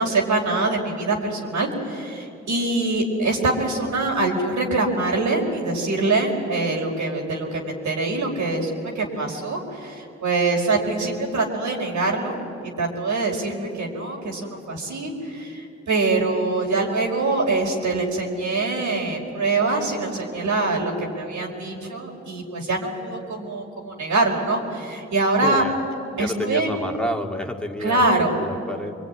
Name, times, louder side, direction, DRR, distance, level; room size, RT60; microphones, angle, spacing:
voice 1, 0.0-8.7 8.9-12.4 12.6-25.6 26.2-26.8 27.8-28.3, right 3 dB, 75° right, -1 dB, 5.0 m, -24 dB
voice 2, 25.4-25.8 26.2-28.9, left 1 dB, 5° left, 2 dB, 2.5 m, -29 dB
25.5 x 23.0 x 9.8 m, 2.6 s
supercardioid pair, 45°, 29 cm